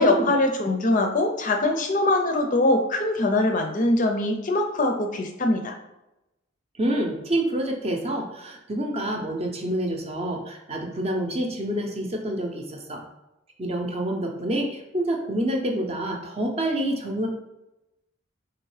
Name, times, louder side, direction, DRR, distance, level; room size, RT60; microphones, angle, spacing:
voice 1, 0.0-5.7, left 2 dB, 40° left, 4 dB, 0.5 m, -22 dB
voice 2, 6.8-13.0 13.6-17.3, right 1 dB, 30° right, 2 dB, 0.7 m, -27 dB
3.6 x 3.0 x 4.8 m, 0.94 s
head